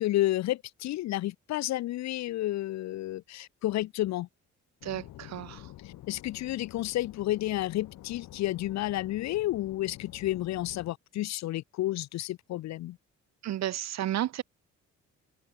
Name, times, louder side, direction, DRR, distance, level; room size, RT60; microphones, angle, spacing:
voice 1, 0.0-4.3 6.1-13.0, left 15 dB, 65° left, 0.5 m, -31 dB
sound 1, 4.8-10.9, left 15 dB, 80° left, 1.2 m, -48 dB
voice 2, 4.8-5.7 13.4-14.4, right 12 dB, 60° right, 0.9 m, -32 dB
cardioid pair, 90°, 30 cm